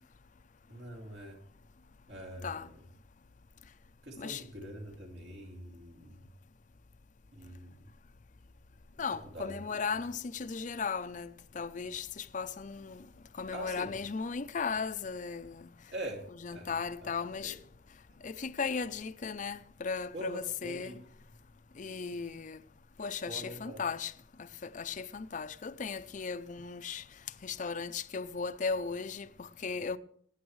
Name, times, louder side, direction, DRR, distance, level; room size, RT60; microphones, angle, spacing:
voice 1, 0.7-1.4 2.1-2.7 4.0-6.3 7.3-7.7 9.3-9.8 13.5-13.9 15.9-16.7 17.0-17.1 17.4-17.5 20.1-21.0 23.2-23.8, right 1 dB, 65° right, 2.5 m, -44 dB
voice 2, 9.0-13.1 13.3-15.7 16.4-17.6 18.2-21.0 21.8-22.6 23.0-24.1 24.4-27.0 27.4-30.0, left 5 dB, 40° left, 0.5 m, -36 dB
20.0 x 9.5 x 3.1 m
head